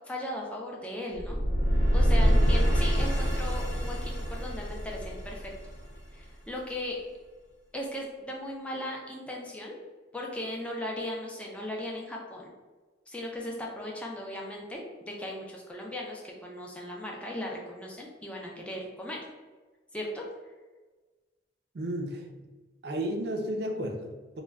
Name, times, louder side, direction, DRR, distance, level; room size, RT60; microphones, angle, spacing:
voice 1, 0.0-1.4 1.9-5.5 6.1-7.0 7.7-9.8 10.1-12.5 13.1-19.2 19.9-20.2, left 1 dB, 5° left, -2 dB, 0.3 m, -37 dB
sound 1, 1.1-6.2, equal, 85° left, 0.8 m, -25 dB
voice 2, 21.7-22.5 22.8-24.4, right 1 dB, 60° right, 3 dB, 0.4 m, -33 dB
2.1 x 2.1 x 3.3 m, 1.3 s
head